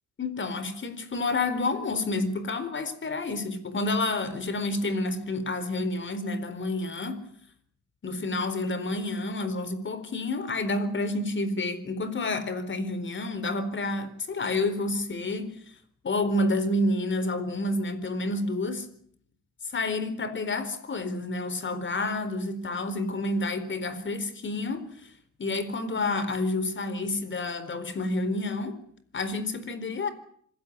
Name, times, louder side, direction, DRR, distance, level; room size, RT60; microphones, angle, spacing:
voice 1, 0.2-7.2 8.0-15.6 16.0-18.9 19.7-24.9 25.4-28.8 29.1-30.1, left 2 dB, 40° left, 4.2 m, -29 dB
26.5 x 16.5 x 9.6 m
cardioid pair, 90°, 30 cm